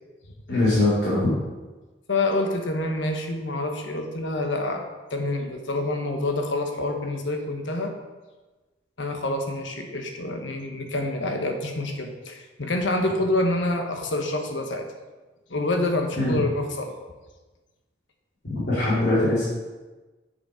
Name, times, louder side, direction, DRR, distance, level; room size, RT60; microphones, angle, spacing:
voice 1, 0.5-1.3 16.2-16.4 18.4-19.4, left 2 dB, 65° left, -9 dB, 2.5 m, -22 dB
voice 2, 2.1-4.8 5.1-7.9 9.0-14.8 15.5-16.9, left 2 dB, 85° left, 4 dB, 1.2 m, -27 dB
7.0 x 6.1 x 5.0 m, 1.2 s
head